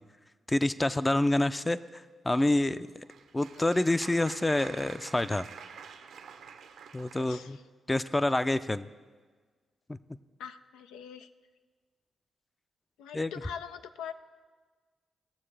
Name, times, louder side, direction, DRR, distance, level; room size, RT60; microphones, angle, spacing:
voice 1, 0.5-3.0 3.3-5.5 6.9-7.6 7.9-8.9 9.9-10.0 13.1-13.3, left 1 dB, 20° left, 13 dB, 0.4 m, -27 dB
Applause, 2.7-7.5, right 6 dB, 80° right, 0.7 m, -48 dB
voice 2, 7.2-7.6 10.4-11.3 13.0-14.1, left 8 dB, 90° left, 9 dB, 0.3 m, -43 dB
18.0 x 6.9 x 3.3 m, 1.5 s
supercardioid pair, 50°, 0 cm